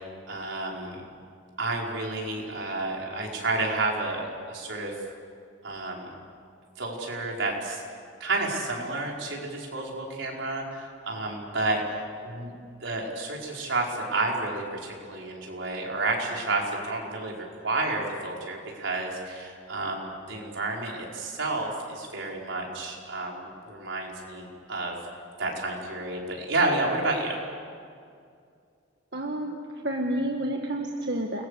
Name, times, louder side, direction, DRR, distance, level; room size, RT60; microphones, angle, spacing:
voice 1, 0.3-1.0 1.6-4.9 5.6-6.1 6.8-7.8 8.2-12.5 12.8-24.9 25.4-27.4, right 2 dB, 80° right, -2 dB, 5.1 m, -30 dB
voice 2, 29.1-31.4, right 1 dB, 60° right, 1 dB, 1.7 m, -30 dB
29.5 x 21.5 x 6.8 m, 2.3 s
head